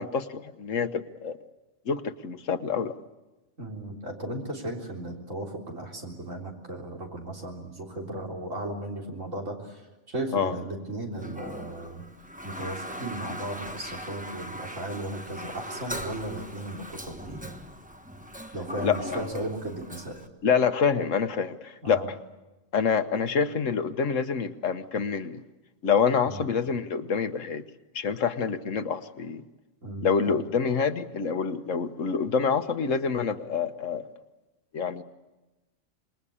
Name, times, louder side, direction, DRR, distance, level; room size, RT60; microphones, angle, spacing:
voice 1, 0.0-1.4 1.9-2.9 10.3-10.5 18.8-19.2 20.4-22.2 22.7-25.4 25.8-27.6 27.9-29.4 30.0-34.0 34.7-35.0, left 6 dB, 75° left, 9 dB, 1.5 m, -27 dB
voice 2, 3.6-9.8 10.1-12.0 12.4-17.5 18.5-20.2 21.8-22.1 26.3-26.4 29.8-30.4, right 1 dB, 80° right, 0 dB, 4.2 m, -36 dB
Toilet flush, 11.1-20.3, equal, 5° right, 1.2 m, -40 dB
26.5 x 21.0 x 8.7 m, 1.1 s
omnidirectional pair, 1.3 m